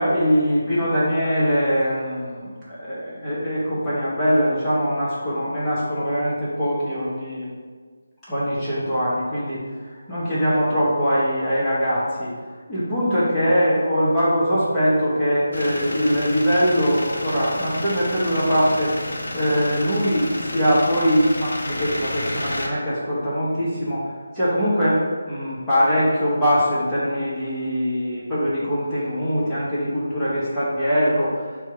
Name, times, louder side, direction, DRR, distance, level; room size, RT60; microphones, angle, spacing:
voice 1, 0.0-7.5 8.3-9.6 10.1-12.3 12.7-31.3, equal, 5° left, -13 dB, 1.1 m, -22 dB
sound 1, 15.5-22.7, left 1 dB, 60° left, 0.5 m, -31 dB
3.3 x 2.3 x 4.2 m, 1.5 s
figure-of-eight pair, 155°, 0 cm